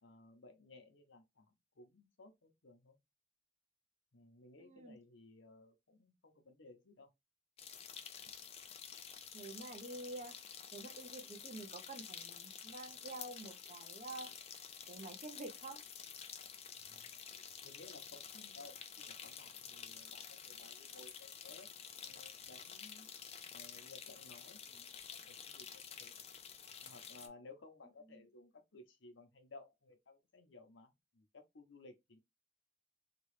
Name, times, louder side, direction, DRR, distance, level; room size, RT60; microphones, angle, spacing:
voice 1, 0.0-3.0 4.1-7.1 16.8-21.7 22.0-23.1 23.5-26.1 26.8-32.2, left 3 dB, 75° left, 0.8 m, -59 dB
voice 2, 4.6-5.0 9.3-15.8, right 2 dB, 35° right, 0.7 m, -49 dB
sound 1, 7.6-27.3, left 7 dB, 30° left, 0.4 m, -50 dB
2.9 x 2.4 x 3.2 m
head